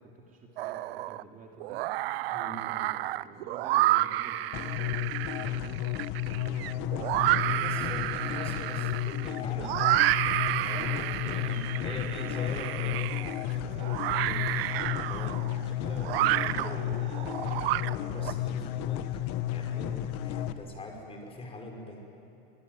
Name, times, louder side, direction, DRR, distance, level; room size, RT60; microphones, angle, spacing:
voice 1, 0.0-1.9 2.4-5.8 6.3-8.1 9.6-10.2 10.7-12.0 15.1-15.7 19.6-20.1, right 4 dB, 30° right, 0 dB, 3.0 m, -49 dB
sound 1, 0.6-1.2 1.6-18.3, right 16 dB, 80° right, 0.7 m, -30 dB
sound 2, 4.5-20.5, left 12 dB, 55° left, 1.5 m, -33 dB
voice 2, 7.2-9.8 10.6-10.9 11.2-14.6 15.0-15.4 15.8-20.0 20.2-22.0, left 2 dB, 20° left, 2 dB, 5.3 m, -42 dB
24.5 x 22.0 x 9.4 m, 2.9 s
supercardioid pair, 125°, 29 cm